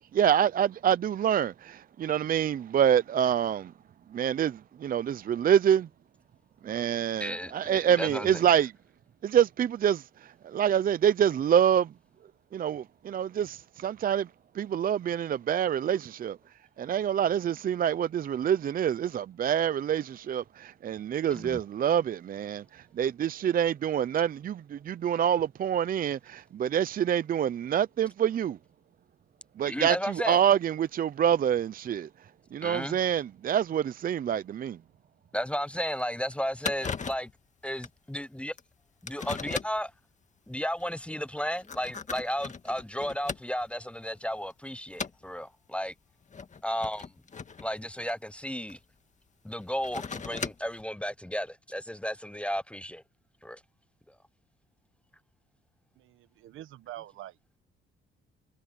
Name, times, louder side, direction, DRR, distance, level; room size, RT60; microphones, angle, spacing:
voice 1, 0.1-3.7 4.1-5.9 6.6-8.7 9.2-11.9 12.5-14.3 14.5-16.4 16.8-28.6 29.6-32.1 32.5-34.8, right 9 dB, 45° right, 0.5 m, -26 dB
voice 2, 7.2-8.4 21.3-21.6 29.6-30.4 32.6-33.0 35.3-37.3 37.6-38.5 39.0-39.9 40.5-45.9 46.6-47.1 47.6-48.8 49.4-53.0 53.4-53.6, equal, 5° left, 0.7 m, -33 dB
sound 1, 35.5-35.6 36.0-36.1 36.3-36.4 36.6-37.3 37.8-38.0 38.6-38.7 39.1-39.9 40.7-40.8 41.5-43.8 44.2-44.5 44.9-45.3 46.2-48.7 49.6-50.8, left 5 dB, 35° left, 2.0 m, -38 dB
voice 3, 56.0-57.3, right 14 dB, 85° right, 1.3 m, -45 dB
cardioid pair, 90°, 20 cm